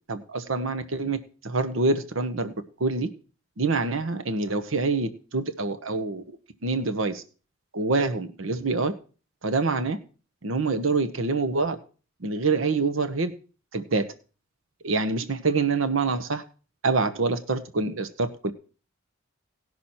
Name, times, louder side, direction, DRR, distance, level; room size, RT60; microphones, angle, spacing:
voice 1, 0.1-1.2 1.4-2.5 2.8-3.1 3.6-6.2 6.6-7.2 7.7-8.9 9.4-10.0 10.4-11.8 12.2-13.3 13.7-14.1 14.8-16.4 16.8-18.5, right 3 dB, 70° right, 10 dB, 1.0 m, -26 dB
18.0 x 6.1 x 4.3 m, 0.36 s
head